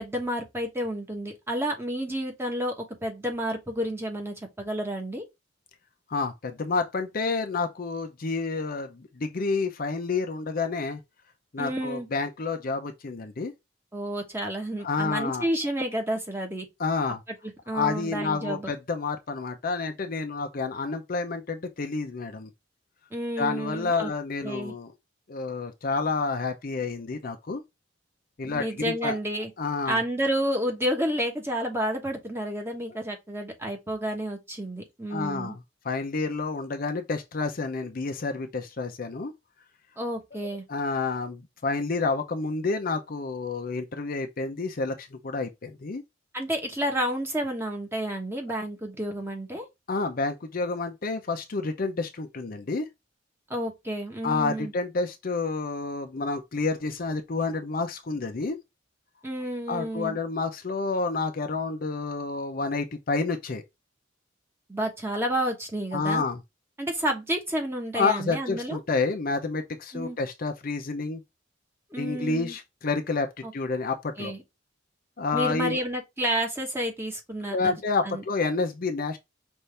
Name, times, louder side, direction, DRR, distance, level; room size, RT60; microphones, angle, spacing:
voice 1, 0.0-5.2 11.6-12.1 13.9-16.7 17.4-18.7 23.1-24.1 24.4-24.7 28.4-29.5 29.8-35.6 40.0-40.6 46.3-49.6 53.5-54.7 59.2-60.2 64.7-66.2 66.8-68.8 69.9-70.2 71.9-72.6 73.4-73.5 74.2-74.4 75.3-77.7 78.0-78.2, equal, 15° right, 1.1 m, -30 dB
voice 2, 6.1-11.0 11.5-13.5 14.8-15.5 16.8-17.2 17.7-22.5 23.4-24.9 25.3-27.6 28.4-29.2 29.6-30.0 35.1-35.6 35.8-39.3 40.7-46.0 49.9-52.9 54.2-58.6 59.7-63.6 65.9-66.4 67.9-71.2 72.0-74.3 75.2-75.8 77.5-79.2, left 4 dB, 50° left, 0.6 m, -29 dB
5.5 x 2.6 x 3.3 m
head